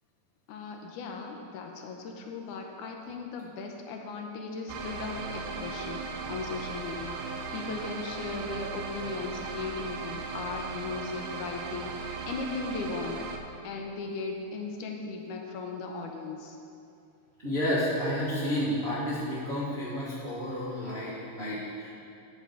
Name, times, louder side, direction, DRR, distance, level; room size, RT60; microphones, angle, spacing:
voice 1, 0.5-13.3 13.6-16.6, left 4 dB, 80° left, 2 dB, 2.1 m, -37 dB
sound 1, 4.7-13.4, right 4 dB, 85° right, 2.2 m, -37 dB
voice 2, 17.4-21.9, equal, 50° right, -11 dB, 0.7 m, -31 dB
9.3 x 4.1 x 6.9 m, 2.6 s
omnidirectional pair, 3.7 m